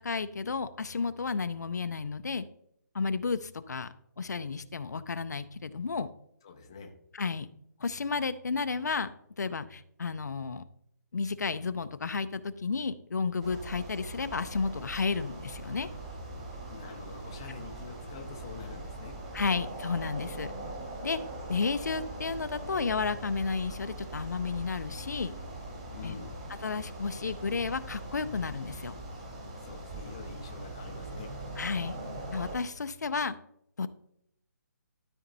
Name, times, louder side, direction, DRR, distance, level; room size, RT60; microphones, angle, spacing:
voice 1, 0.0-2.4 2.9-3.9 4.2-6.1 7.1-7.5 7.8-9.1 9.4-10.6 11.1-15.9 19.3-20.5 21.0-21.2 21.5-25.3 26.0-26.1 26.6-28.9 31.6-32.0 32.3-33.4 33.8-33.9, left 4 dB, 70° left, 12 dB, 0.6 m, -32 dB
voice 2, 6.4-6.9 16.7-19.1 25.9-26.4 29.6-31.4, left 5 dB, 15° left, 2 dB, 0.5 m, -46 dB
sound 1, 13.4-32.5, right 1 dB, 20° right, 1.7 m, -41 dB
12.5 x 4.4 x 4.0 m, 0.73 s
hypercardioid pair, 180°, 10 cm